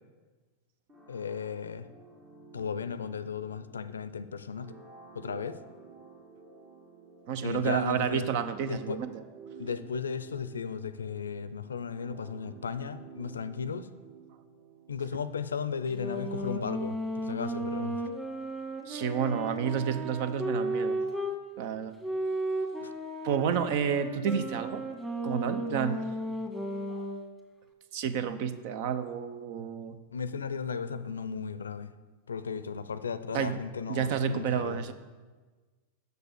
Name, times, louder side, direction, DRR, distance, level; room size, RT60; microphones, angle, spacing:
sound 1, 0.9-15.4, right 5 dB, 40° right, 1.8 m, -53 dB
voice 1, 1.1-1.9 2.5-4.7 5.1-5.6 7.4-8.3 8.6-9.0 9.6-13.9 14.9-18.1 22.8-22.9 30.1-31.9 32.3-34.8, left 6 dB, 85° left, 14 dB, 0.4 m, -35 dB
voice 2, 7.3-9.2 18.9-21.0 21.6-22.0 23.2-24.9 25.2-26.1 26.9-27.0 27.9-30.0 33.3-33.6 33.9-34.9, right 8 dB, 55° right, 12 dB, 0.7 m, -30 dB
sound 2, 15.9-21.4 22.0-27.2, right 1 dB, 5° right, 1.6 m, -34 dB
6.8 x 6.6 x 6.7 m, 1.4 s
hypercardioid pair, 95°, 0 cm